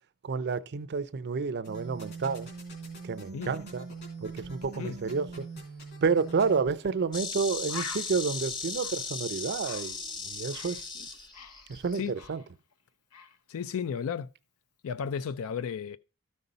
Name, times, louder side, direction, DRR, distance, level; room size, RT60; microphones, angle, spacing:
voice 1, 0.2-2.5 3.0-3.9 4.2-5.5 6.0-10.9 11.7-12.4, right 5 dB, 50° right, 0.5 m, -30 dB
sound 1, 1.6-6.6, right 4 dB, 50° left, 3.1 m, -42 dB
Bird, 6.8-7.0 7.3-7.4 7.7-10.9 11.1-12.8 13.1-13.4, left 6 dB, 90° left, 0.9 m, -46 dB
Insect, 7.1-12.1, left 4 dB, 20° left, 0.9 m, -37 dB
voice 2, 13.5-14.3 14.8-16.0, left 7 dB, 65° left, 0.4 m, -33 dB
13.0 x 5.5 x 3.9 m
head